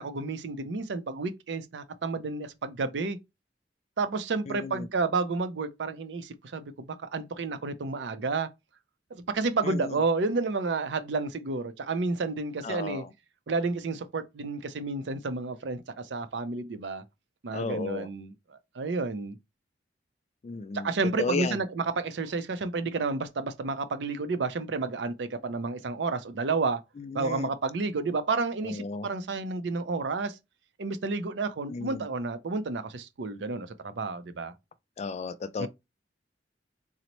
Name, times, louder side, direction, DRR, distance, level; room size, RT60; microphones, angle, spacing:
voice 1, 0.0-3.2 4.0-8.5 9.1-13.0 13.5-17.0 17.4-19.4 20.7-26.8 27.1-30.4 30.8-34.5 35.6-35.7, right 3 dB, 75° right, 0.5 m, -31 dB
voice 2, 4.5-4.9 9.6-10.0 12.6-13.1 17.5-18.1 20.4-20.9 21.2-21.6 27.0-27.5 28.6-29.1 31.7-32.1 35.0-35.7, left 4 dB, 40° left, 0.3 m, -34 dB
4.0 x 2.0 x 3.0 m
head